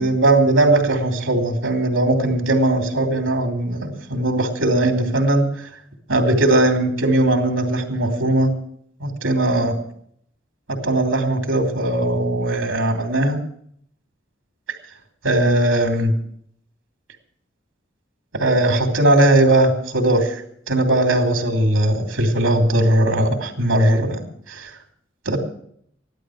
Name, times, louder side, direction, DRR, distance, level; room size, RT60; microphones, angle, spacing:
voice 1, 0.0-5.5 6.1-8.5 9.0-9.8 10.8-13.4 15.2-16.1 18.3-20.4 20.7-24.7 25.3-25.4, right 1 dB, 90° right, 3 dB, 2.9 m, -19 dB
15.0 x 11.5 x 6.3 m, 0.66 s
head